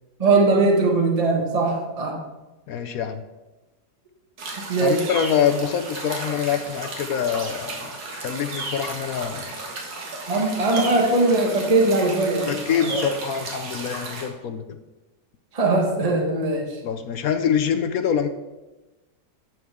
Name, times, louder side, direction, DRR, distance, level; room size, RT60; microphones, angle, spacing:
voice 1, 0.2-2.2 4.6-5.1 10.3-13.1 15.5-16.8, right 2 dB, 20° right, 0 dB, 1.4 m, -21 dB
voice 2, 2.7-3.2 4.8-9.6 12.5-14.8 16.8-18.3, left 8 dB, 70° left, 8 dB, 0.9 m, -25 dB
sound 1, 4.4-14.3, right 3 dB, 75° right, 2.2 m, -34 dB
10.5 x 7.8 x 3.6 m, 1.1 s
omnidirectional pair, 1.9 m